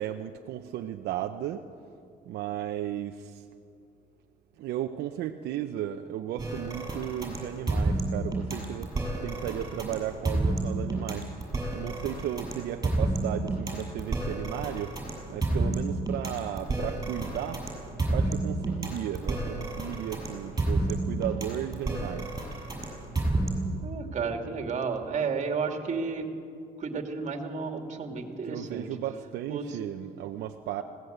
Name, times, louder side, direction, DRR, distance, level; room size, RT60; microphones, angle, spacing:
voice 1, 0.0-1.7 2.3-3.5 4.6-8.9 9.2-17.6 18.1-22.4 28.4-30.8, right 11 dB, 75° right, 5 dB, 0.8 m, -35 dB
sound 1, 6.4-23.8, right 2 dB, 20° right, 6.9 m, -30 dB
voice 2, 23.8-26.4 26.8-28.9 29.5-29.8, right 5 dB, 45° right, 5 dB, 2.5 m, -32 dB
20.5 x 17.5 x 8.1 m, 2.4 s
cardioid pair, 110°, 17 cm